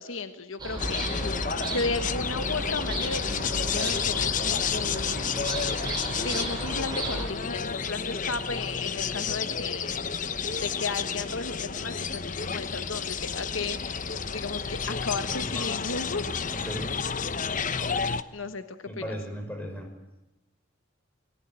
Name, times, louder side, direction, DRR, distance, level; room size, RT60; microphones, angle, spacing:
voice 1, 0.0-1.4 1.7-5.7 6.1-10.1 10.6-16.6 18.3-19.2, left 3 dB, 80° left, 9 dB, 1.4 m, -35 dB
sound 1, 0.6-7.3, right 1 dB, 20° right, 7.6 m, -34 dB
sound 2, 0.8-18.2, left 6 dB, 40° left, 0.9 m, -31 dB
voice 2, 16.5-16.9 18.8-19.9, equal, 10° left, 4 dB, 5.1 m, -36 dB
28.5 x 20.0 x 9.0 m, 1.0 s
head